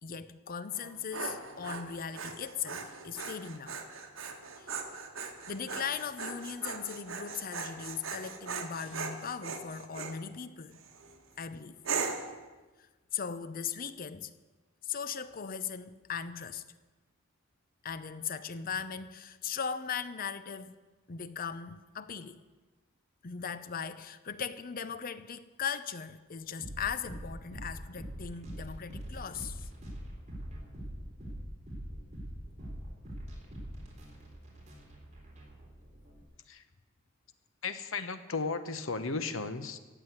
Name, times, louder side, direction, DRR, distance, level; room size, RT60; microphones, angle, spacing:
voice 1, 0.0-3.8 4.6-4.8 5.5-10.8 11.4-11.8 13.1-14.3 14.8-16.6 17.8-20.8 21.1-22.4 23.2-29.7, left 7 dB, 45° left, 0.6 m, -38 dB
Dog, 0.7-10.2 10.7-11.1 11.8-12.4, right 5 dB, 75° right, 1.7 m, -39 dB
sound 1, 26.6-36.2, equal, 35° right, 3.9 m, -43 dB
voice 2, 37.6-39.8, left 4 dB, 70° left, 1.1 m, -35 dB
15.0 x 7.9 x 9.4 m
head